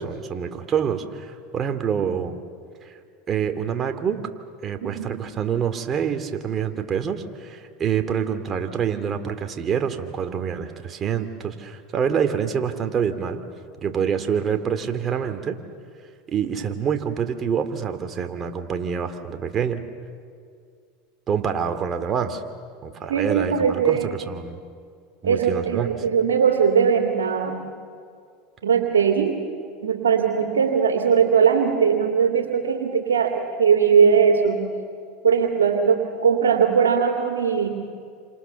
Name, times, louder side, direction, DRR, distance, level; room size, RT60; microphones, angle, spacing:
voice 1, 0.0-2.4 2.8-3.0 3.3-4.3 4.6-13.4 13.8-15.6 16.3-19.8 21.3-22.4 22.8-24.6 25.2-25.9, right 7 dB, 35° right, 7 dB, 2.8 m, -26 dB
voice 2, 23.1-24.2 25.2-27.6 28.6-29.4 29.8-34.6 35.2-37.7, right 6 dB, 90° right, 3 dB, 2.8 m, -20 dB
29.0 x 27.0 x 7.2 m, 2.2 s
hypercardioid pair, 90°, 0 cm